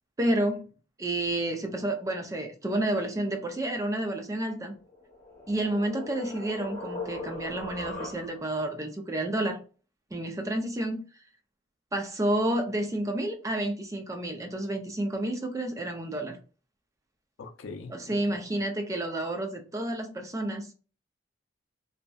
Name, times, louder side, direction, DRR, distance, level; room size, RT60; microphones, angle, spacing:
voice 1, 0.2-0.7 1.0-4.8 5.5-9.6 10.1-11.0 11.9-16.4 17.9-20.7, right 1 dB, 15° right, 0.4 m, -30 dB
sound 1, 4.8-8.6, left 2 dB, 45° left, 0.9 m, -39 dB
voice 2, 17.4-18.4, left 3 dB, 90° left, 0.4 m, -43 dB
2.6 x 2.1 x 2.2 m
head